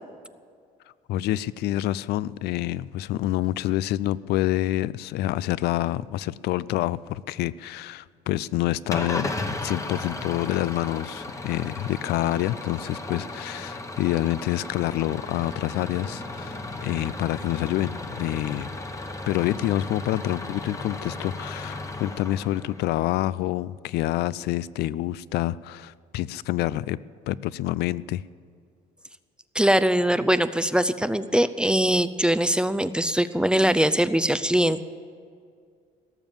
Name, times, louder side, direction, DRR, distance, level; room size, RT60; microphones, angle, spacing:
voice 1, 1.1-9.3 9.6-18.7 19.3-27.0 27.3-28.2, left 15 dB, 75° left, 20 dB, 0.4 m, -27 dB
Engine starting / Idling, 8.9-23.1, left 2 dB, 20° left, 1.1 m, -35 dB
voice 2, 29.5-34.8, right 1 dB, 5° right, 12 dB, 0.4 m, -22 dB
18.0 x 7.1 x 9.1 m, 2.2 s
cardioid pair, 110°, 17 cm